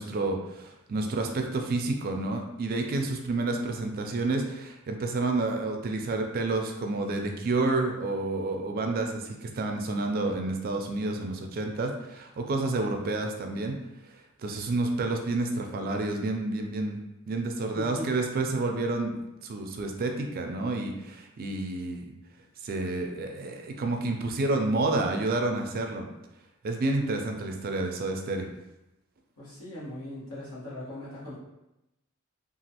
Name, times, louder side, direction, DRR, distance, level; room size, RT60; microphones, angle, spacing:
voice 1, 0.0-13.8 14.4-17.0 17.3-19.1 19.4-22.1 22.6-26.0 26.6-28.5, right 2 dB, 45° right, 3 dB, 0.3 m, -29 dB
voice 2, 17.7-18.1 29.4-31.4, equal, 75° left, -8 dB, 1.4 m, -39 dB
3.0 x 2.4 x 2.8 m, 0.92 s
head